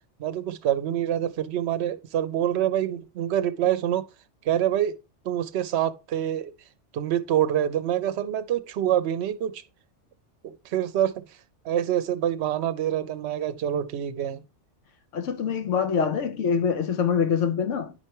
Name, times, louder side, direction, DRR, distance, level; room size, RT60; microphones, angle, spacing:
voice 1, 0.2-4.0 4.5-5.0 5.2-6.5 6.9-9.6 10.4-11.2 11.6-14.4, right 11 dB, 65° right, 0.8 m, -26 dB
voice 2, 15.1-17.9, left 6 dB, 85° left, 1.1 m, -25 dB
9.7 x 4.5 x 2.9 m
omnidirectional pair, 1.2 m